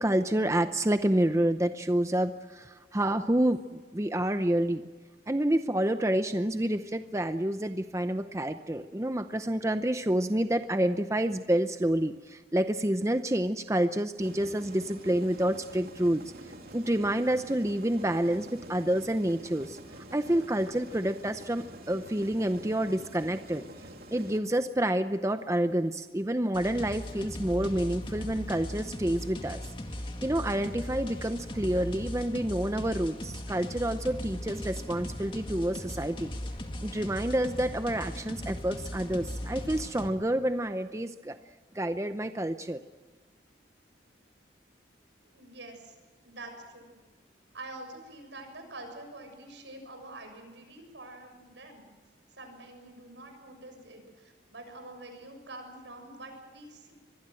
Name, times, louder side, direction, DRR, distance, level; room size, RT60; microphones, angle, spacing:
voice 1, 0.0-4.8 5.3-16.3 16.7-23.6 24.1-29.6 29.9-36.3 36.8-41.4 41.7-42.8, right 1 dB, 15° right, 9 dB, 0.7 m, -28 dB
sound 1, 14.2-24.4, right 1 dB, 55° right, 3.2 m, -47 dB
sound 2, 26.5-40.1, left 1 dB, 25° left, 2.2 m, -38 dB
voice 2, 45.2-46.0 46.2-47.0 47.5-51.9 52.3-56.9, right 2 dB, 80° right, 5 dB, 7.0 m, -46 dB
25.5 x 21.5 x 7.7 m, 1.4 s
head